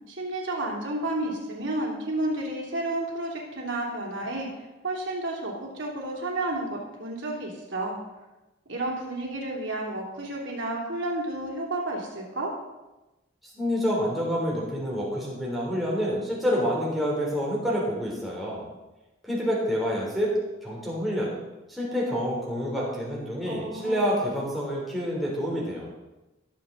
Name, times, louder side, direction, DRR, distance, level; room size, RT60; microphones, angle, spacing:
voice 1, 0.1-4.5 4.8-8.0 8.7-12.5 23.4-24.1, right 2 dB, 65° right, -2 dB, 3.1 m, -31 dB
voice 2, 13.6-18.7 19.2-21.4 21.7-25.9, equal, ahead, -5 dB, 3.5 m, -28 dB
18.0 x 7.5 x 4.0 m, 1.0 s
head